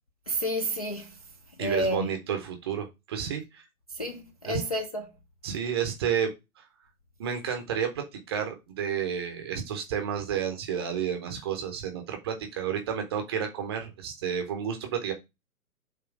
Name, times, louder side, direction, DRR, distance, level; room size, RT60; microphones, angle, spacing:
voice 1, 0.3-1.2 1.6-2.1 3.9-5.0, equal, 25° left, 0.5 m, -30 dB
voice 2, 1.6-3.6 4.4-4.6 5.4-6.6 7.2-15.1, right 8 dB, 15° right, 0.7 m, -31 dB
7.3 x 3.1 x 4.7 m
figure-of-eight pair, 130°, 45 cm